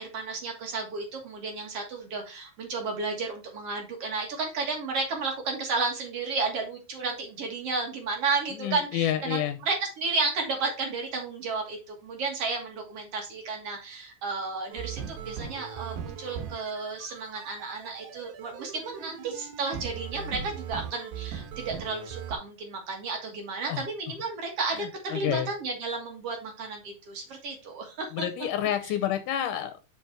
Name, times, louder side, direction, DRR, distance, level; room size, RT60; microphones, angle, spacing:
voice 1, 0.0-28.2 28.8-28.9, right 4 dB, 50° right, 2 dB, 2.4 m, -32 dB
voice 2, 8.6-9.6 23.7-23.8 24.8-25.5 28.1-29.8, left 11 dB, 80° left, 7 dB, 2.2 m, -29 dB
sound 1, 14.7-22.3, right 7 dB, 75° right, 2.5 m, -39 dB
5.9 x 5.0 x 4.4 m, 0.29 s
omnidirectional pair, 3.8 m